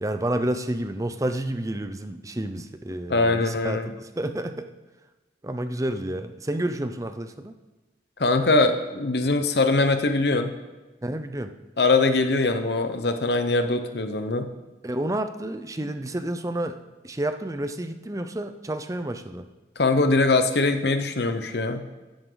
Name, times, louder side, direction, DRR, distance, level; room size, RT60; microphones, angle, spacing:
voice 1, 0.0-4.7 5.4-7.5 11.0-11.5 14.8-16.8 17.0-19.5, right 1 dB, 20° right, 9 dB, 0.6 m, -30 dB
voice 2, 3.1-3.9 8.2-10.5 11.8-14.5 15.8-15.9 19.8-21.8, left 3 dB, 70° left, 8 dB, 1.0 m, -22 dB
13.0 x 10.5 x 4.0 m, 1.2 s
head